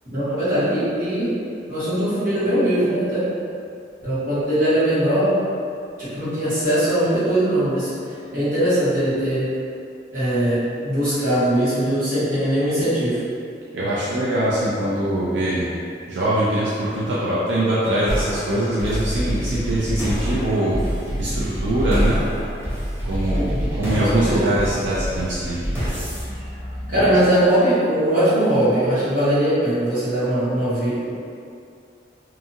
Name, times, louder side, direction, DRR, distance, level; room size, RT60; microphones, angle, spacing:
voice 1, 0.0-1.3 1.7-3.2 4.0-5.4 6.0-7.9 8.3-9.5 10.1-13.2 23.3-24.5 26.9-31.1, right 1 dB, 50° right, -14 dB, 1.4 m, -21 dB
voice 2, 13.7-15.7 16.1-20.8 21.2-22.2 23.0-25.6 26.9-27.1, right 1 dB, 85° right, -9 dB, 0.5 m, -22 dB
sound 1, 18.1-27.5, equal, 15° right, 0.6 m, -26 dB
2.6 x 2.4 x 2.7 m, 2.4 s
head